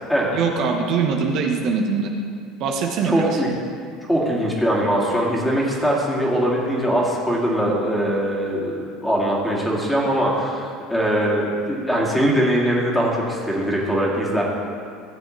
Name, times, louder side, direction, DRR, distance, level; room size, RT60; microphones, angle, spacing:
voice 1, 0.3-2.1 2.6-3.4, right 5 dB, 60° right, 2 dB, 1.0 m, -22 dB
voice 2, 3.0-3.5 4.1-14.4, equal, 5° left, -4 dB, 2.2 m, -21 dB
15.5 x 7.1 x 3.2 m, 2.3 s
supercardioid pair, 110°, 0 cm